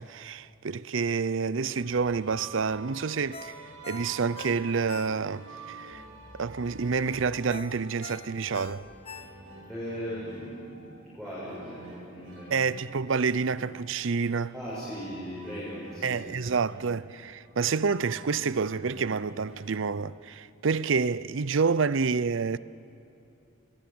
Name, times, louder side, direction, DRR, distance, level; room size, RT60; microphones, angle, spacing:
voice 1, 0.0-3.6 3.9-6.0 6.4-8.8 12.5-14.5 16.0-22.6, right 5 dB, 65° right, 0.6 m, -28 dB
sound 1, 1.8-19.8, right 2 dB, 85° right, 7.2 m, -48 dB
Ringtone, 3.3-5.6 5.9-6.0 7.5-9.7 10.1-10.2, left 4 dB, 30° left, 1.2 m, -44 dB
voice 2, 9.7-10.9 11.1-12.5 14.5-16.2, equal, ahead, 7.0 m, -38 dB
29.0 x 19.5 x 8.6 m
head